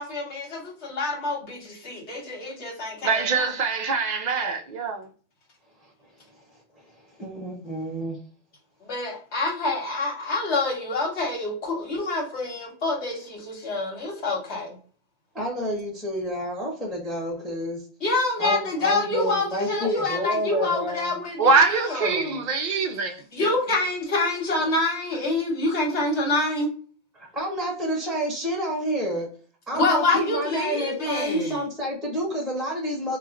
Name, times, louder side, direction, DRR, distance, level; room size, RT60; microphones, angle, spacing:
voice 1, 0.0-3.5 8.8-14.8 18.0-22.4 23.3-26.7 29.7-31.6, left 2 dB, 70° left, 1.3 m, -27 dB
voice 2, 3.0-5.1 19.8-19.9 21.4-23.2, right 4 dB, 60° right, 0.4 m, -23 dB
voice 3, 7.2-8.2 15.3-17.8 18.4-21.2 27.1-29.3 29.7-33.2, equal, ahead, 0.7 m, -29 dB
4.2 x 2.2 x 2.4 m
omnidirectional pair, 1.2 m